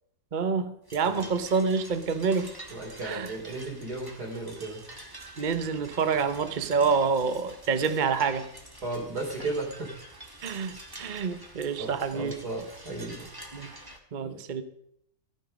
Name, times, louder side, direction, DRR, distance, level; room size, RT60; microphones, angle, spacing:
voice 1, 0.3-2.5 3.0-3.3 5.4-8.5 10.4-12.4 13.5-13.7 14.1-14.6, right 5 dB, 35° right, 10 dB, 0.8 m, -27 dB
sound 1, 0.9-14.0, right 1 dB, 10° right, 1.8 m, -47 dB
voice 2, 2.7-4.8 8.8-9.9 11.8-13.3 14.2-14.4, right 2 dB, 55° right, -1 dB, 4.0 m, -35 dB
14.5 x 10.0 x 5.2 m, 0.73 s
omnidirectional pair, 2.0 m